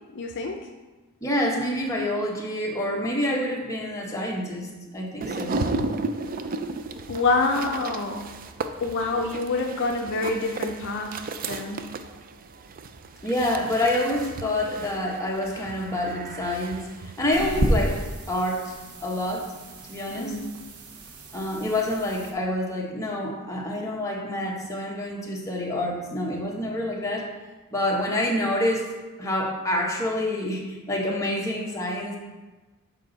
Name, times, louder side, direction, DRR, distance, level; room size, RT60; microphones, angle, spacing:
voice 1, 0.1-0.6 7.1-8.3 8.8-11.8 20.2-20.4, left 3 dB, 55° left, 2 dB, 0.6 m, -27 dB
voice 2, 1.2-5.6 13.2-18.0 18.3-18.7 19.0-19.5 19.9-20.4 21.3-27.3 27.7-28.9 29.2-32.2, left 1 dB, 15° left, -2 dB, 1.2 m, -27 dB
sound 1, 5.2-18.0, right 3 dB, 40° right, 0.4 m, -35 dB
sound 2, 17.3-22.3, right 1 dB, 80° right, 1.0 m, -31 dB
7.5 x 5.2 x 4.0 m, 1.2 s
head